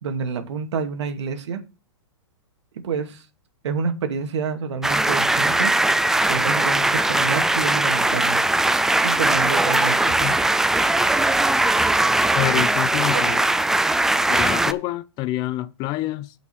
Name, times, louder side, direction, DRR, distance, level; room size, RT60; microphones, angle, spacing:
voice 1, 0.0-1.6 2.8-3.2 3.6-5.7 6.2-8.4 9.0-10.3 12.6-12.7 13.1-13.3, right 5 dB, 70° right, 2.4 m, -28 dB
sound 1, 4.8-14.7, right 2 dB, 5° right, 0.4 m, -20 dB
voice 2, 12.4-13.4 14.3-16.3, left 16 dB, 30° left, 0.7 m, -27 dB
9.2 x 5.8 x 6.3 m
hypercardioid pair, 145°, 15 cm